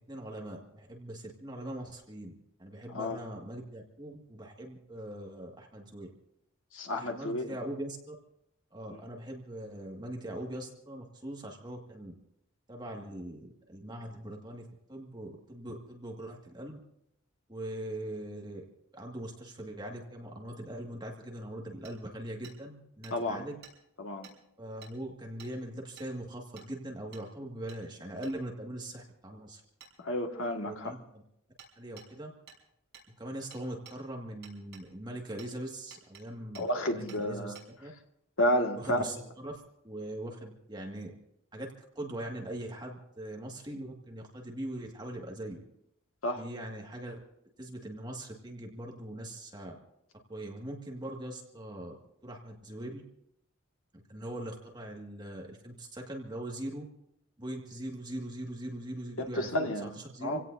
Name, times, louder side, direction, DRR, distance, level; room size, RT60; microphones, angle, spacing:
voice 1, 0.0-2.3 2.6-6.1 7.0-8.2 8.7-12.1 12.7-16.8 17.5-18.6 18.9-23.6 24.6-29.6 30.6-31.2 31.8-32.3 33.2-37.5 37.8-37.9 38.7-41.1 41.5-45.6 46.3-47.2 47.6-49.8 50.3-52.0 52.2-53.0 53.9-56.9 57.4-60.4, right 1 dB, 20° right, 0 dB, 2.0 m, -41 dB
voice 2, 6.7-7.6 23.1-23.4 24.0-24.3 30.0-30.9 36.5-37.6 38.4-39.1 46.2-46.4 59.4-59.9 60.2-60.4, equal, 80° left, 3 dB, 1.9 m, -31 dB
Hammer, 21.9-22.0 22.4-22.6 23.0-23.1 23.6-23.8 24.2-24.4 24.8-24.9 25.4-25.5 26.0-26.1 26.6-26.7 27.1-27.3 27.7-27.8 28.2-28.4 29.8-29.9 31.6-31.7 32.0-32.1 32.5-32.6 32.9-33.1 33.5-34.0 34.4-34.9 35.4-35.5 35.9-36.2 36.6-36.7 37.1-37.2 37.6-37.7, right 6 dB, 55° right, 5.1 m, -52 dB
27.0 x 17.0 x 2.7 m, 0.78 s
head